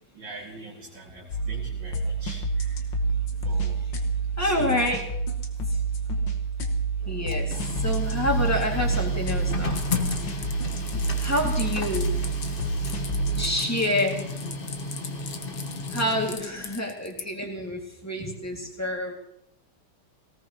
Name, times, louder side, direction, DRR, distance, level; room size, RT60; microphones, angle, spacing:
voice 1, 0.1-2.9 3.4-3.8 4.3-4.9 6.2-6.3, right 2 dB, 70° right, -5 dB, 3.0 m, -42 dB
sound 1, 1.3-13.5, right 3 dB, 65° left, 2.1 m, -28 dB
voice 2, 4.4-5.0 5.7-5.8 7.1-9.9 10.2-10.5 11.2-12.1 13.3-14.3 15.9-19.1, left 1 dB, 10° left, 0 dB, 2.2 m, -28 dB
Printer, 7.0-16.8, left 3 dB, 30° left, 1.3 m, -34 dB
sound 2, 9.8-17.2, left 6 dB, 50° left, 1.2 m, -39 dB
19.0 x 18.0 x 3.0 m, 0.77 s
omnidirectional pair, 2.2 m